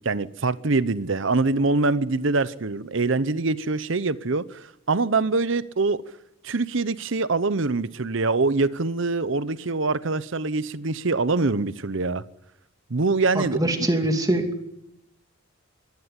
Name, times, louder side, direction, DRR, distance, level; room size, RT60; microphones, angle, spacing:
voice 1, 0.0-6.0 6.4-12.2 12.9-13.7, right 3 dB, 60° right, 0.8 m, -24 dB
voice 2, 13.3-14.5, right 1 dB, 15° right, 2.7 m, -23 dB
23.5 x 18.0 x 9.8 m
head